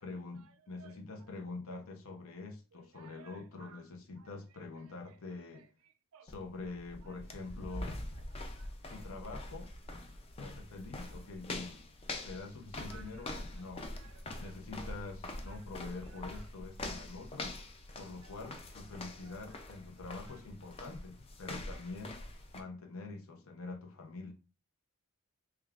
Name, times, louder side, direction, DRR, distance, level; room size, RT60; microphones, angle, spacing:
voice 1, 0.0-5.7 6.2-8.0 8.9-9.7 10.4-11.8 12.2-13.9 14.4-17.5 17.9-22.2 22.5-24.3, left 3 dB, 65° left, 0.7 m, -45 dB
voice 2, 2.9-3.8 4.2-4.3 5.5-5.6 6.1-6.3 8.6-9.0 12.9-13.6 14.0-14.6 15.5-15.6 16.1-16.4 18.2-18.4 19.0-19.4 20.1-20.2, right 7 dB, 70° right, 0.4 m, -59 dB
sound 1, 6.3-22.6, left 2 dB, 25° left, 0.4 m, -44 dB
3.5 x 3.3 x 2.4 m
head